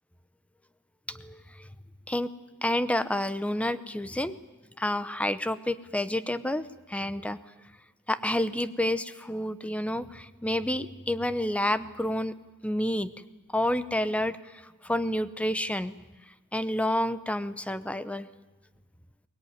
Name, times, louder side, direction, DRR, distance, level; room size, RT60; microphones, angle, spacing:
voice 1, 1.1-1.7 2.1-2.3 2.6-4.4 4.8-7.4 8.1-12.3 12.6-13.1 13.5-14.4 14.8-15.9 16.5-18.3, left 1 dB, 5° left, 13 dB, 0.8 m, -29 dB
22.5 x 21.0 x 9.5 m, 1.2 s
head